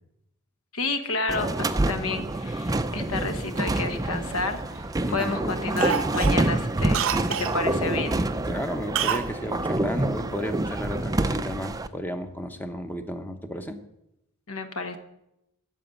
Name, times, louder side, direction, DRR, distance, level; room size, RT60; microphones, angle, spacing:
voice 1, 0.7-4.8 5.1-8.2 14.5-15.0, left 3 dB, 70° left, 8 dB, 1.2 m, -30 dB
sound 1, 1.3-11.9, right 2 dB, 15° right, 0.4 m, -27 dB
sound 2, 1.7-13.7, right 1 dB, 50° left, 3.9 m, -56 dB
Cough, 3.6-4.8 5.2-5.4 5.8-7.6 8.9-9.3 9.6-9.7, right 8 dB, 60° right, 0.6 m, -29 dB
voice 2, 5.0-5.5 8.4-13.8, equal, 10° left, 8 dB, 0.8 m, -33 dB
9.2 x 6.9 x 9.0 m, 0.87 s
head